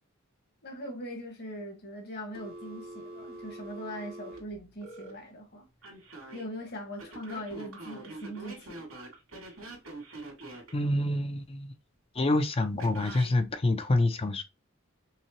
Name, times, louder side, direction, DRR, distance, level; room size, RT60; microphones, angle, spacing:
voice 1, 0.6-5.7 6.3-8.8, equal, 50° left, 1.5 m, -41 dB
Telephone, 2.3-5.1 5.8-6.4 7.0-10.7 12.8-13.3, right 2 dB, 85° right, 2.3 m, -44 dB
voice 2, 10.7-11.7 12.1-14.4, left 2 dB, 30° left, 0.5 m, -27 dB
5.6 x 2.2 x 3.0 m
head